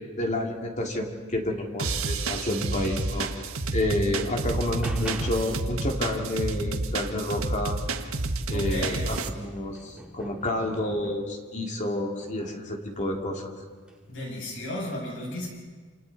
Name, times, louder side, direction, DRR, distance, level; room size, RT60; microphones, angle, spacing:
voice 1, 0.0-3.3 3.7-7.8 8.5-13.5, left 1 dB, 35° left, 1 dB, 2.6 m, -29 dB
sound 1, 1.8-9.3, right 3 dB, 80° right, 1.4 m, -30 dB
sound 2, 4.1-5.6 8.0-8.1 8.5-11.5 12.2-12.7 13.8-14.0, equal, 5° right, 2.6 m, -45 dB
voice 2, 8.5-9.1 14.1-15.5, left 1 dB, 60° left, -1 dB, 7.2 m, -34 dB
28.5 x 28.0 x 4.2 m, 1.5 s
head